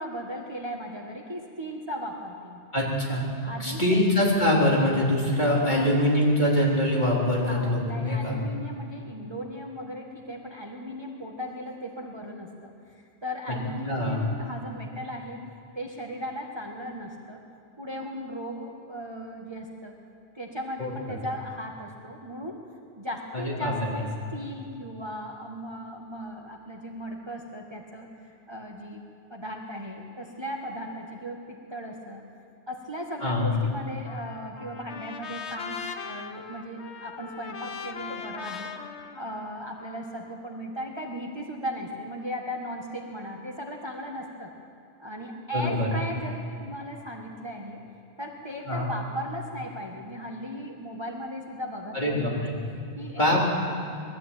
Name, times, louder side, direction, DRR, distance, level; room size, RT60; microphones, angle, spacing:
voice 1, 0.0-2.6 3.4-3.8 5.6-5.8 7.3-15.5 15.7-17.4 17.8-19.9 20.3-22.6 23.0-29.0 29.3-32.2 32.7-38.7 39.2-44.5 45.0-47.8 48.2-52.4 53.0-53.4, equal, 25° right, 0 dB, 1.6 m, -37 dB
voice 2, 2.7-3.3 3.6-8.4 13.5-13.6 13.9-14.2 20.8-20.9 23.3-23.7 33.2-33.5 45.5-45.9 48.7-48.9 51.9-52.5 53.2-53.4, left 1 dB, 45° left, -5 dB, 4.4 m, -24 dB
Trumpet, 34.1-40.3, left 6 dB, 80° left, 1.3 m, -39 dB
21.0 x 14.5 x 9.1 m, 2.4 s
omnidirectional pair, 1.1 m